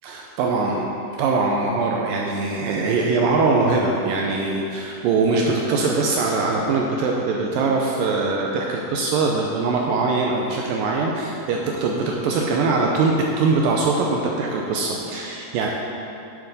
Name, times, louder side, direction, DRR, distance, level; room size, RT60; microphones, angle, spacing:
voice 1, 0.0-15.7, right 3 dB, 85° right, 0 dB, 2.0 m, -22 dB
9.9 x 7.2 x 4.1 m, 2.8 s
omnidirectional pair, 4.7 m